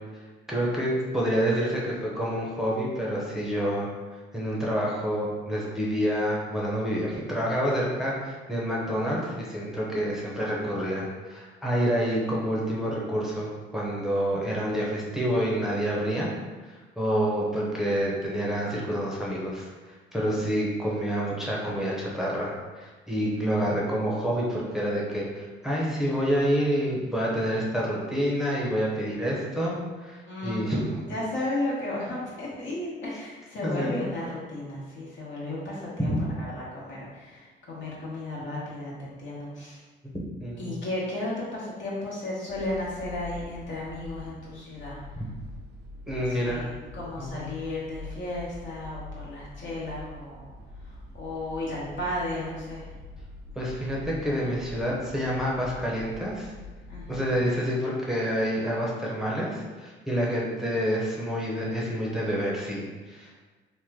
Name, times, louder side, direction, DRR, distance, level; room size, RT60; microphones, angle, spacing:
voice 1, 0.5-3.9 4.3-16.3 16.7-30.9 33.6-33.9 36.0-36.2 40.4-40.8 46.1-46.7 47.2-47.5 53.6-56.5 57.1-63.4, equal, ahead, -5 dB, 0.7 m, -28 dB
voice 2, 30.3-36.1 36.5-39.8 40.6-45.0 46.2-46.6 47.0-50.5 50.8-52.9 56.9-57.2 60.3-60.4, left 1 dB, 70° left, -6 dB, 1.1 m, -34 dB
sound 1, 42.5-57.6, left 2 dB, 55° right, 0.5 m, -44 dB
3.0 x 2.1 x 3.5 m, 1.3 s
cardioid pair, 90°, 20 cm